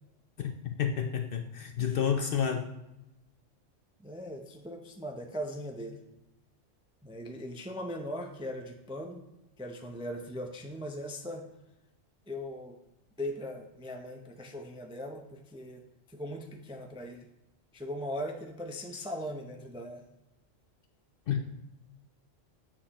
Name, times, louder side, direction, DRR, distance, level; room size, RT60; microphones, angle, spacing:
voice 1, 0.4-2.7 21.3-21.5, left 8 dB, 60° left, 5 dB, 0.6 m, -30 dB
voice 2, 4.0-6.0 7.0-9.2 9.6-11.4 12.3-12.8 13.2-15.8 16.1-17.2 17.7-20.0, equal, 10° right, 3 dB, 0.3 m, -39 dB
7.5 x 6.6 x 2.9 m, 0.92 s
omnidirectional pair, 1.3 m